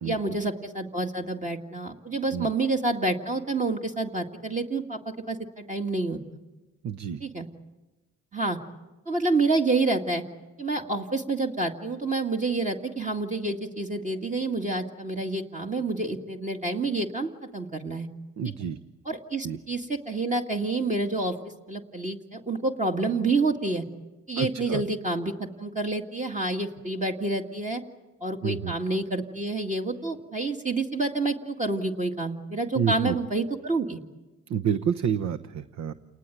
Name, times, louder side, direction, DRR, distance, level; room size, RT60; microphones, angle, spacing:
voice 1, 0.0-5.0 5.3-6.4 7.2-7.5 8.3-8.6 9.1-10.2 10.6-18.1 19.1-21.4 21.7-23.8 24.3-25.3 25.6-27.8 28.2-34.0, right 2 dB, 25° right, 2 dB, 2.0 m, -28 dB
voice 2, 6.8-7.2 18.4-18.8 19.4-19.6 24.4-24.8 28.4-28.7 32.7-33.2 34.5-35.9, right 8 dB, 65° right, 12 dB, 1.0 m, -28 dB
29.5 x 19.5 x 9.2 m, 1.1 s
cardioid pair, 90°, 30 cm